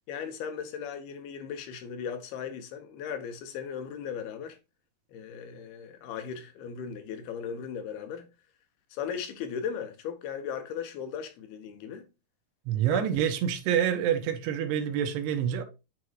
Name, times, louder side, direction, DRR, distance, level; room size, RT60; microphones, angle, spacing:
voice 1, 0.1-4.6 5.1-8.3 8.9-12.0 12.8-13.1, left 7 dB, 80° left, 2.9 m, -37 dB
voice 2, 12.7-15.6, right 9 dB, 85° right, 3.2 m, -27 dB
9.3 x 4.7 x 2.4 m
omnidirectional pair, 4.6 m